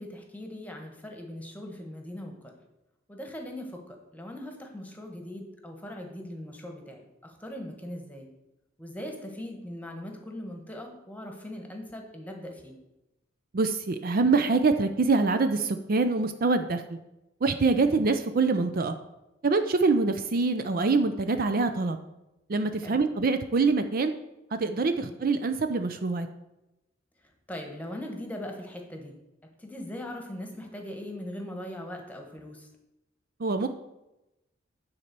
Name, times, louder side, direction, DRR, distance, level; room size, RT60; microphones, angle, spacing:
voice 1, 0.0-2.6 3.1-8.3 8.8-12.8 17.8-18.0 22.8-23.0 25.0-25.1 27.5-29.2 29.6-32.7, left 1 dB, 10° left, 3 dB, 1.3 m, -40 dB
voice 2, 13.5-17.0 17.4-18.9 19.4-22.0 22.5-24.1 24.5-26.3 33.4-33.7, right 3 dB, 50° right, 8 dB, 0.5 m, -25 dB
9.6 x 4.2 x 6.7 m, 0.95 s
head